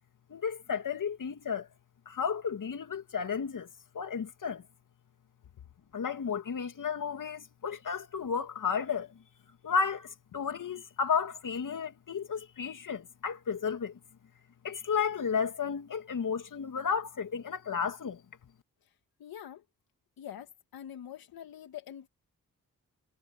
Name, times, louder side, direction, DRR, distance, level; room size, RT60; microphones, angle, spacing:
voice 1, 0.3-1.7 2.1-3.7 3.9-4.6 5.9-9.1 9.6-14.0 14.6-18.2, left 6 dB, 60° left, 2.8 m, -33 dB
voice 2, 19.2-19.6 20.2-22.1, left 10 dB, 80° left, 1.8 m, -45 dB
supercardioid pair, 45°, 36 cm